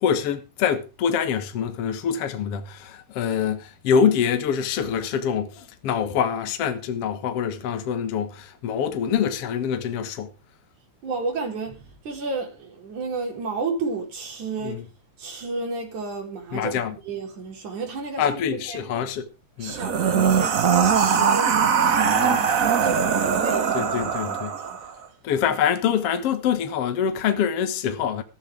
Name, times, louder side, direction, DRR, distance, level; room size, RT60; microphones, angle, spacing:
voice 1, 0.0-10.3 14.6-14.7 16.5-16.9 18.2-19.3 19.6-19.8 23.7-24.5 25.2-28.2, left 7 dB, 60° left, 2.2 m, -25 dB
voice 2, 11.0-14.9 15.2-16.8 17.1-18.9 19.6-24.8 25.5-25.6, right 4 dB, 80° right, 5.3 m, -32 dB
sound 1, 19.7-24.9, right 6 dB, 55° right, 0.9 m, -21 dB
14.5 x 13.5 x 3.5 m
omnidirectional pair, 3.4 m